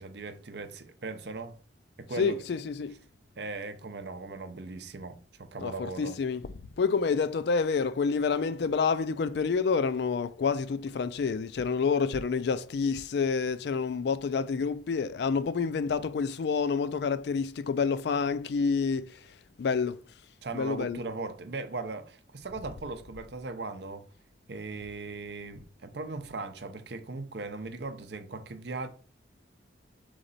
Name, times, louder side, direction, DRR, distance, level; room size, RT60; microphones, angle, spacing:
voice 1, 0.0-1.6 2.0-2.4 3.4-6.2 20.4-24.1 24.5-28.9, right 3 dB, 60° right, 0.6 m, -38 dB
voice 2, 2.2-3.0 5.6-6.4 6.8-19.2 19.6-20.0 20.5-21.0, left 5 dB, 60° left, 0.3 m, -28 dB
3.8 x 3.2 x 4.0 m
head